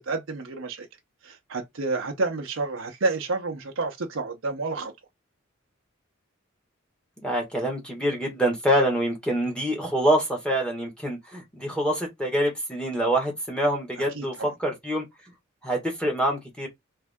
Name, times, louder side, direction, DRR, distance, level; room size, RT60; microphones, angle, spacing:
voice 1, 0.1-0.9 1.2-4.9 14.1-14.5, right 3 dB, 65° right, 0.7 m, -29 dB
voice 2, 7.2-15.0 15.6-16.7, right 1 dB, 5° left, 1.5 m, -25 dB
3.5 x 3.3 x 3.5 m
head